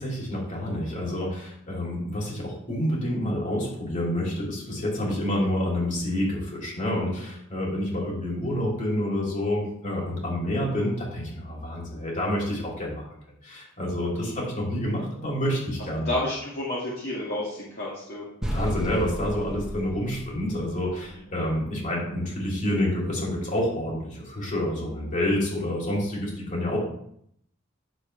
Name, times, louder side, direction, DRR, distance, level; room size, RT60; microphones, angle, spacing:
voice 1, 0.0-16.1 18.5-26.8, left 1 dB, 40° left, -3 dB, 3.2 m, -28 dB
voice 2, 16.1-18.3, left 1 dB, 55° left, -7 dB, 2.2 m, -30 dB
sound 1, 18.4-21.4, equal, 5° right, 1.1 m, -33 dB
10.5 x 6.8 x 3.3 m, 0.72 s
head